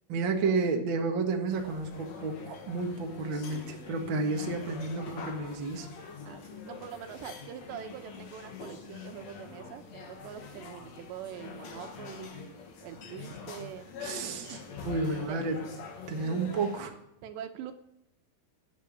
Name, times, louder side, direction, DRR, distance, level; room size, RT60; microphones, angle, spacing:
voice 1, 0.1-5.9 14.0-14.6 14.8-15.6 16.1-16.9, right 3 dB, 65° right, 3 dB, 1.2 m, -31 dB
sound 1, 1.5-16.8, left 5 dB, 55° left, 2.1 m, -44 dB
voice 2, 6.2-12.5 12.8-14.6 15.3-15.4 17.2-17.7, right 9 dB, 80° right, 7 dB, 3.3 m, -44 dB
14.0 x 8.6 x 8.6 m, 0.84 s
omnidirectional pair, 5.0 m